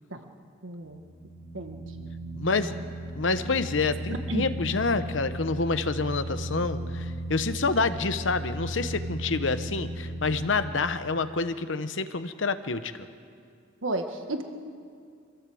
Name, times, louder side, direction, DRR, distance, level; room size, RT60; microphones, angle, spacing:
voice 1, 0.6-1.0 1.5-2.1 4.3-4.4 13.8-14.4, right 1 dB, 85° right, 5 dB, 1.5 m, -33 dB
sound 1, 0.9-10.4, right 1 dB, 10° left, 4.0 m, -36 dB
voice 2, 2.3-2.8 3.1-12.9, left 4 dB, 75° left, 11 dB, 1.0 m, -28 dB
24.0 x 16.0 x 7.8 m, 2.3 s
head